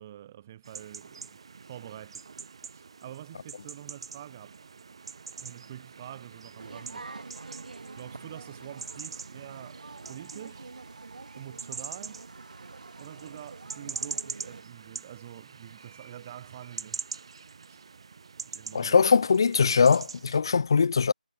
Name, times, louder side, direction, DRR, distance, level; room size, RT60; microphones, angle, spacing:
voice 1, 0.0-1.4 1.7-2.2 2.7-4.6 5.4-7.1 7.9-9.8 10.1-10.7 11.4-12.3 13.0-17.1 17.7-17.8 18.5-19.0, right 11 dB, 20° right, 2.5 m, -46 dB
sound 1, 0.6-20.4, right 5 dB, 40° right, 1.4 m, -43 dB
zoo waitinginline, 6.6-14.6, right 3 dB, 65° right, 1.7 m, -46 dB
voice 2, 18.7-21.1, left 5 dB, 30° left, 0.4 m, -21 dB
figure-of-eight pair, 175°, 5 cm